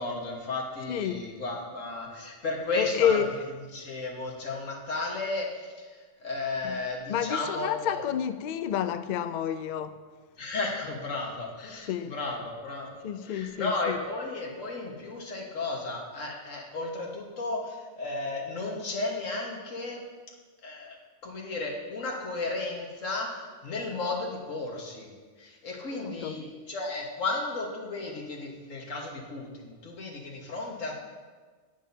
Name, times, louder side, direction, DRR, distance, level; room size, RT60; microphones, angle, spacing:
voice 1, 0.0-3.2 3.7-5.5 5.8-5.9 6.2-8.0 10.4-20.0 20.6-21.0 21.2-25.1 25.4-30.9, left 3 dB, 90° left, 1.9 m, -34 dB
voice 2, 0.9-1.3 2.7-3.3 6.6-10.0 11.8-12.2 13.0-14.0 25.9-26.4, left 9 dB, 70° left, 0.4 m, -30 dB
11.0 x 9.6 x 2.8 m
omnidirectional pair, 1.3 m